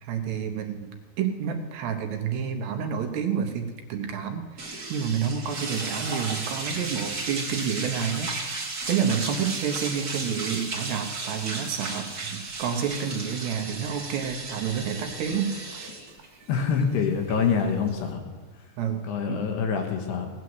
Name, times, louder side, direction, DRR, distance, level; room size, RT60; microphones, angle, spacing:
voice 1, 0.0-8.3 8.9-15.9 18.8-19.4, right 7 dB, 75° right, 5 dB, 3.0 m, -29 dB
sound 1, 4.6-18.1, right 3 dB, 35° right, 1.6 m, -34 dB
voice 2, 16.5-18.2 19.0-20.3, left 6 dB, 70° left, 4 dB, 3.4 m, -25 dB
18.0 x 9.6 x 7.9 m, 1.4 s
omnidirectional pair, 5.3 m